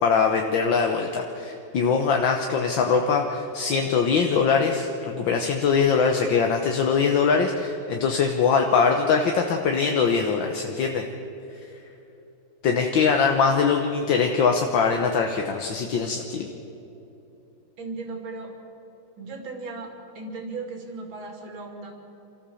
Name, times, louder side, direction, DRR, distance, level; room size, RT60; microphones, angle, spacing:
voice 1, 0.0-11.0 12.6-16.5, left 5 dB, 70° left, 3 dB, 1.8 m, -22 dB
voice 2, 17.8-18.6 19.2-22.0, right 3 dB, 80° right, 2 dB, 3.5 m, -36 dB
28.5 x 14.5 x 7.1 m, 3.0 s
omnidirectional pair, 2.1 m